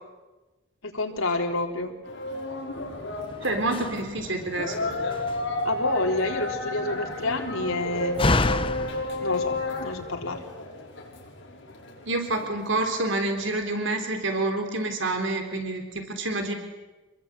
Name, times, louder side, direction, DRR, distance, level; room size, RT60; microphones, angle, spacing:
voice 1, 0.8-2.0 5.6-8.2 9.2-10.4, left 2 dB, 80° left, 2 dB, 3.9 m, -28 dB
sound 1, 2.0-13.0, left 2 dB, 55° left, 6.7 m, -33 dB
Slam, 2.8-10.4, left 2 dB, 25° left, 0.9 m, -32 dB
voice 2, 3.4-4.9 12.1-16.5, right 2 dB, 60° right, 5 dB, 3.9 m, -28 dB
27.0 x 22.5 x 9.2 m, 1.1 s
head